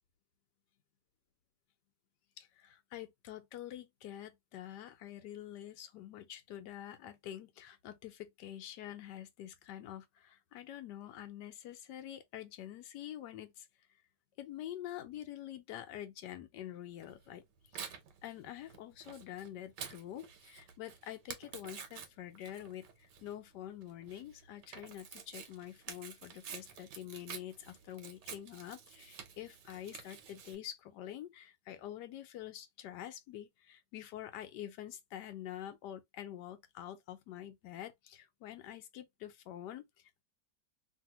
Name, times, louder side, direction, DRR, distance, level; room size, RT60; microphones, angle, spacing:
voice 1, 2.4-13.7 14.4-17.4 17.7-40.2, left 12 dB, 85° left, 1.3 m, -47 dB
Tearing, 17.0-30.5, right 7 dB, 85° right, 1.4 m, -50 dB
2.8 x 2.7 x 2.8 m
omnidirectional pair, 1.8 m